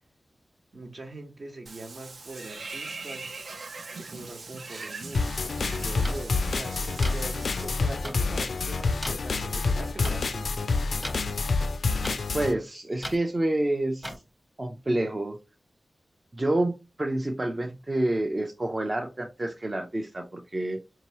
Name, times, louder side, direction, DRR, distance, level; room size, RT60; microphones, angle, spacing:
voice 1, 0.7-3.3 3.9-10.7, right 2 dB, 60° right, 1.2 m, -42 dB
Water / Bathtub (filling or washing), 1.7-7.7, right 3 dB, 80° right, 0.6 m, -41 dB
sound 1, 5.1-12.5, left 3 dB, 80° left, 0.3 m, -27 dB
sound 2, 6.0-6.1 7.0-7.2 8.0-8.1 9.0-9.1 10.0-10.1 11.0-11.2 12.0-12.2 13.0-13.2 14.0-14.2, equal, 10° right, 0.9 m, -35 dB
voice 2, 12.3-14.1 14.6-15.4 16.3-20.8, right 1 dB, 35° right, 0.5 m, -28 dB
4.5 x 2.9 x 2.9 m
wide cardioid pair, 90°, 0 cm